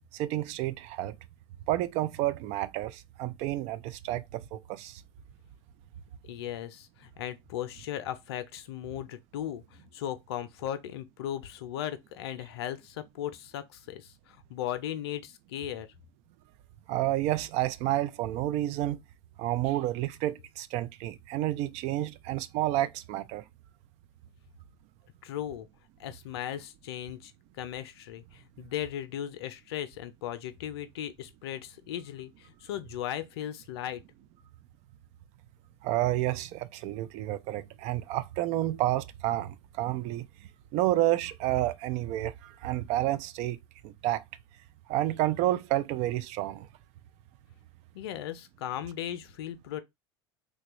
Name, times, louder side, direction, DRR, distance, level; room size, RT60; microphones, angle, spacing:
voice 1, 0.1-1.2 1.7-5.0 16.9-19.0 19.4-23.4 35.8-40.3 40.7-43.6 43.8-44.2 44.9-46.7, right 14 dB, 55° right, 0.4 m, -30 dB
voice 2, 6.3-15.9 25.2-25.7 26.0-27.3 27.6-34.0 47.9-49.8, left 11 dB, 75° left, 0.5 m, -37 dB
3.1 x 2.3 x 2.9 m
hypercardioid pair, 85°, 13 cm